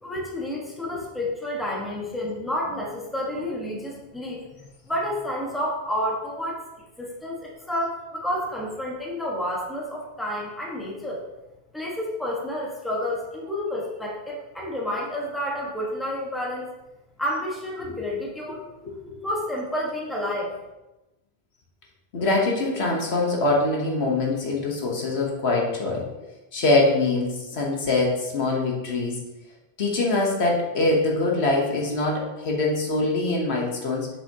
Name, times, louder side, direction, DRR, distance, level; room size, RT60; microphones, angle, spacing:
voice 1, 0.0-6.7 7.0-11.2 11.7-16.7 17.2-18.6 19.2-20.5, left 1 dB, ahead, -4 dB, 1.3 m, -30 dB
voice 2, 18.8-19.2 22.1-26.1 26.5-29.2 29.8-34.1, left 2 dB, 80° left, -1 dB, 1.4 m, -24 dB
6.9 x 5.6 x 2.8 m, 1.0 s
omnidirectional pair, 1.1 m